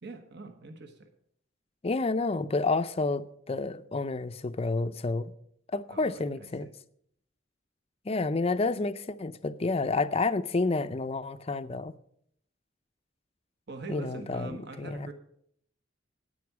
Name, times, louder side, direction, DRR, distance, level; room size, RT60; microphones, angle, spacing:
voice 1, 0.0-1.1 5.9-6.7 13.7-15.1, right 2 dB, 60° right, 1.3 m, -43 dB
voice 2, 1.8-5.3 5.7-6.7 8.1-11.9 13.9-15.1, left 3 dB, 30° left, 0.5 m, -29 dB
9.5 x 9.5 x 5.9 m
head